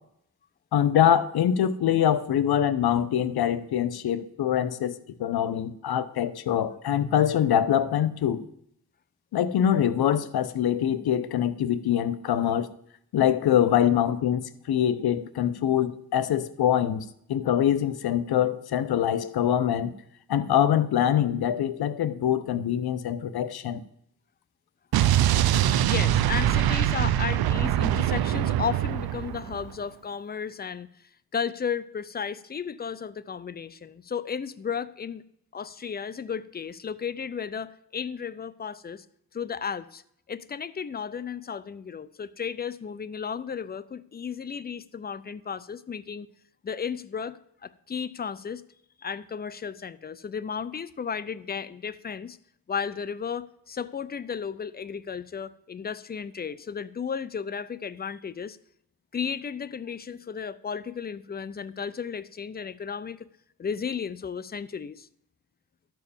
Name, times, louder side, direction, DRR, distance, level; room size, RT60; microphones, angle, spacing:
voice 1, 0.7-8.4 9.3-12.7 13.1-19.9 20.3-23.8, left 10 dB, 70° left, 14 dB, 0.8 m, -24 dB
Explosion, 24.9-29.7, right 12 dB, 70° right, 0.6 m, -23 dB
voice 2, 25.9-30.9 31.3-35.2 35.5-39.1 39.3-40.0 40.3-46.3 46.6-48.6 49.0-52.4 52.7-58.6 59.1-63.3 63.6-65.1, left 6 dB, 25° left, 16 dB, 0.5 m, -34 dB
12.5 x 4.6 x 7.0 m, 0.73 s
cardioid pair, 90°, 39 cm